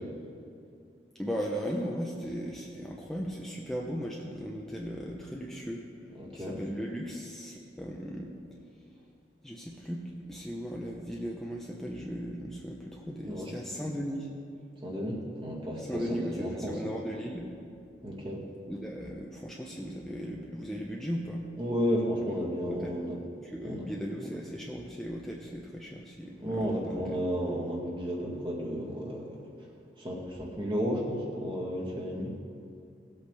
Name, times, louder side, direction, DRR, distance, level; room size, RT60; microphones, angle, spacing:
voice 1, 1.1-8.3 8.7-8.8 9.4-14.3 15.8-17.5 18.7-21.4 22.6-22.9 23.4-27.0, equal, 5° left, -2 dB, 0.7 m, -37 dB
voice 2, 6.2-6.6 13.2-13.5 14.8-16.9 18.0-18.4 21.6-23.2 23.6-23.9 26.4-29.5 30.0-32.4, equal, 30° right, -3 dB, 2.0 m, -33 dB
18.5 x 8.2 x 3.4 m, 2.4 s
head